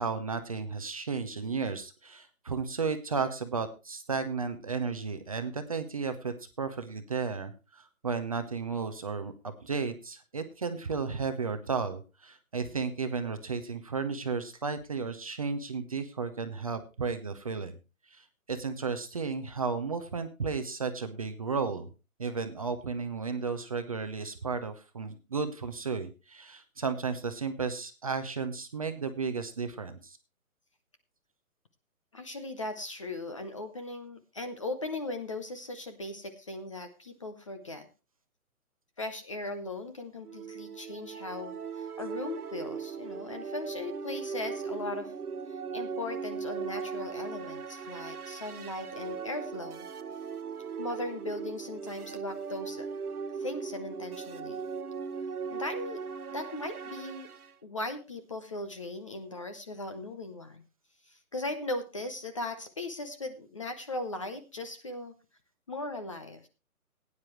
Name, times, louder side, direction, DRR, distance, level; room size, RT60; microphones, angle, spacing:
voice 1, 0.0-17.7 18.1-21.9 22.2-30.2, right 5 dB, 25° right, 8 dB, 0.6 m, -33 dB
voice 2, 32.1-37.9 39.0-45.1 45.5-49.9 50.8-52.9 53.4-54.6 55.5-56.0 56.3-57.3 57.6-60.6 61.1-65.2 65.7-66.5, left 2 dB, 20° left, 9 dB, 0.6 m, -38 dB
sound 1, 40.2-57.5, right 6 dB, 85° right, 1.1 m, -39 dB
16.5 x 9.6 x 3.1 m, 0.29 s
hypercardioid pair, 155°, 44 cm